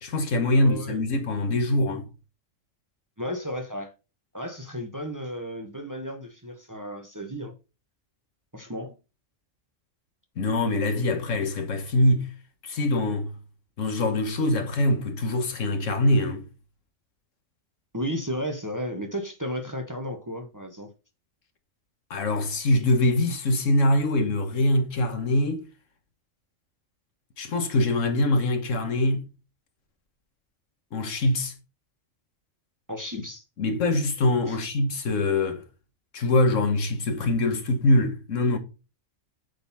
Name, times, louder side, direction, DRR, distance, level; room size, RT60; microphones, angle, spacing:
voice 1, 0.0-2.0 10.4-12.3 12.6-13.3 13.8-16.5 22.1-25.7 27.4-29.2 30.9-31.5 33.1-33.2 33.6-35.6 36.1-38.6, left 1 dB, 80° left, 1.6 m, -23 dB
voice 2, 0.5-1.0 3.2-3.9 4.3-7.5 8.5-8.9 17.9-20.9 32.9-33.4 34.5-34.6, equal, 15° right, 0.9 m, -33 dB
8.2 x 4.0 x 4.0 m
omnidirectional pair, 1.3 m